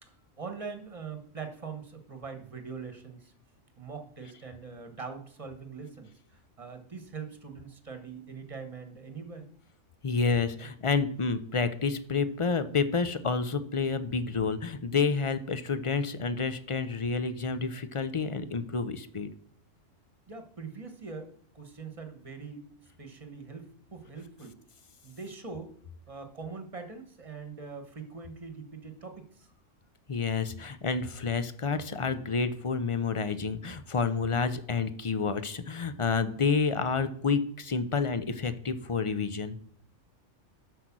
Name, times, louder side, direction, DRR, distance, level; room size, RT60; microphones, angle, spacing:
voice 1, 0.0-3.3 3.8-9.5 20.3-22.7 23.0-24.6 25.0-25.7 26.1-29.5, right 5 dB, 25° right, 6 dB, 1.4 m, -42 dB
voice 2, 10.0-19.3 30.1-39.6, left 5 dB, 40° left, 11 dB, 0.5 m, -29 dB
7.9 x 6.5 x 6.1 m, 0.62 s
omnidirectional pair, 1.3 m